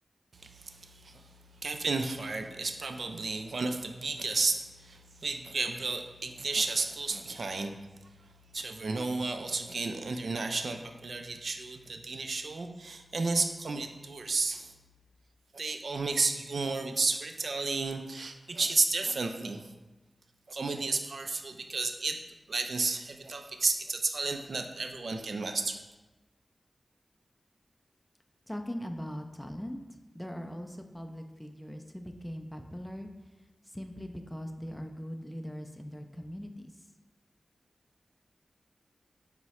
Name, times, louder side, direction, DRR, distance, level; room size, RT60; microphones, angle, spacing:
voice 1, 0.3-1.2 1.6-7.8 8.5-14.7 15.5-19.6 20.5-22.2 22.5-25.8, right 3 dB, 75° right, 6 dB, 0.3 m, -32 dB
voice 2, 28.5-33.1 33.6-36.9, equal, 10° left, 4 dB, 0.4 m, -41 dB
4.6 x 2.0 x 4.1 m, 1.1 s
cardioid pair, 50°, 0 cm